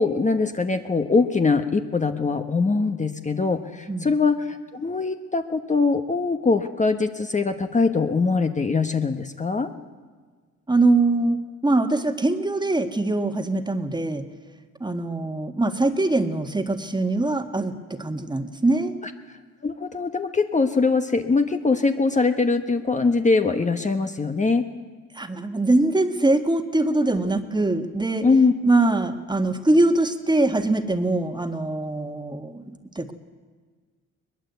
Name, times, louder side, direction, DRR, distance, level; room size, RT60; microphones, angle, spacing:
voice 1, 0.0-9.7 19.6-24.7 28.2-28.5, left 4 dB, 25° left, 7 dB, 1.2 m, -22 dB
voice 2, 10.7-14.2 14.8-18.9 25.1-28.2 28.6-33.1, right 2 dB, 15° right, 7 dB, 1.7 m, -23 dB
21.5 x 20.5 x 8.1 m, 1.5 s
cardioid pair, 90°, 30 cm